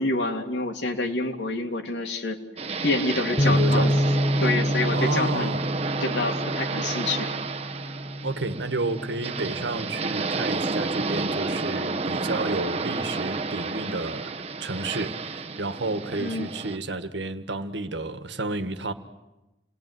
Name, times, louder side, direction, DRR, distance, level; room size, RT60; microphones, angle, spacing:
voice 1, 0.0-2.4 2.8-3.9 4.4-5.5 6.0-7.4 16.1-16.5, left 2 dB, 70° left, 2.7 m, -27 dB
sound 1, 2.6-16.8, right 3 dB, 35° right, 1.0 m, -31 dB
Bass guitar, 3.4-9.6, equal, 20° left, 0.9 m, -27 dB
voice 2, 3.4-4.0 4.9-5.6 8.2-14.3 14.6-18.9, right 2 dB, 75° right, 1.7 m, -31 dB
29.0 x 20.0 x 9.6 m
head